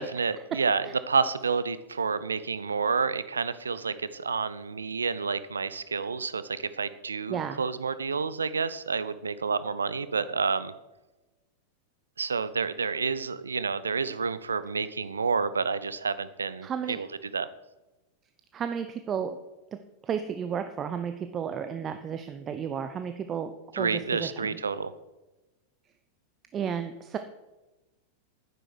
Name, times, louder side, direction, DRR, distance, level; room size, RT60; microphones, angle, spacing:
voice 1, 0.0-10.7 12.2-17.1 17.3-17.5 23.7-24.9, right 5 dB, 75° right, 15 dB, 0.7 m, -29 dB
voice 2, 7.3-7.6 16.6-17.0 18.5-19.4 20.0-24.6 26.5-27.2, right 7 dB, 25° right, 9 dB, 0.8 m, -33 dB
11.0 x 10.0 x 6.3 m, 1.0 s
figure-of-eight pair, 90°, 0 cm